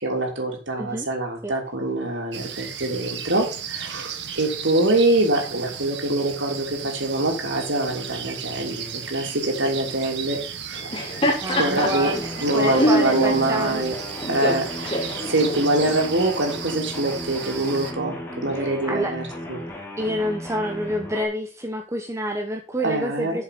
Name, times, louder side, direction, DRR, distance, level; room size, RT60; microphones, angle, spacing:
voice 1, 0.0-10.4 10.6-10.8 11.5-12.1 12.4-13.9 14.3-19.2 19.5-19.6 22.8-23.4, right 2 dB, 85° right, 1 dB, 3.3 m, -24 dB
sound 1, 2.3-17.9, right 8 dB, 65° right, 1.5 m, -35 dB
Laughter, 10.7-16.0, equal, 30° left, 3.3 m, -26 dB
voice 2, 11.4-13.8 14.4-14.5 18.5-19.1 20.0-23.4, equal, 15° right, 4 dB, 1.0 m, -28 dB
sound 2, 11.8-21.2, left 1 dB, 15° left, 2.6 m, -35 dB
7.3 x 7.3 x 6.0 m, 0.36 s
head